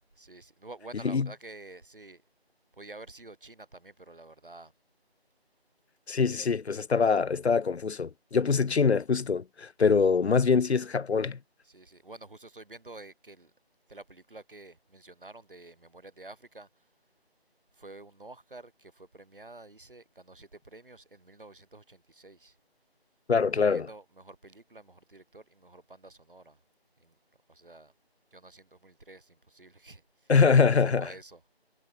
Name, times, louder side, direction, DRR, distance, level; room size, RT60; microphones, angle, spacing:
voice 1, 0.2-2.2 2.8-4.7 6.3-6.6 11.6-13.5 13.9-16.7 17.8-22.5 23.5-26.6 27.0-27.1 27.5-27.9 28.3-30.0 30.8-31.4, right 2 dB, 55° right, 3.9 m, -49 dB
voice 2, 6.1-11.4 23.3-23.9 30.3-31.1, left 5 dB, 80° left, 0.7 m, -24 dB
figure-of-eight pair, 175°, 32 cm